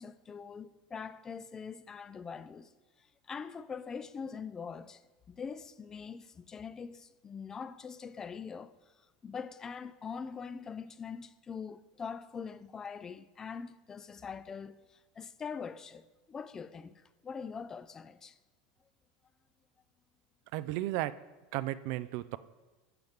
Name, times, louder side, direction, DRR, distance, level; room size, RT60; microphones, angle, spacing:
voice 1, 0.0-2.7 3.3-5.0 5.3-8.7 9.2-14.8 15.2-16.0 16.3-18.4, left 6 dB, 25° left, 0.5 m, -43 dB
voice 2, 20.5-21.2 21.5-22.4, right 16 dB, 65° right, 0.4 m, -34 dB
12.0 x 7.8 x 3.5 m
supercardioid pair, 105°, 2 cm